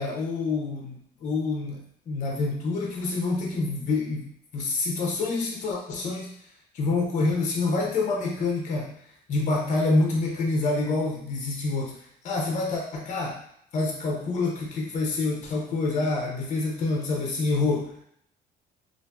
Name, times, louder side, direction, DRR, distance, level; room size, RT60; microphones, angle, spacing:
voice 1, 0.0-6.3 6.7-8.9 9.3-12.0 12.2-13.4 13.7-18.0, left 3 dB, 45° left, 0 dB, 0.7 m, -27 dB
2.8 x 2.5 x 2.2 m, 0.68 s
cardioid pair, 110°, 17 cm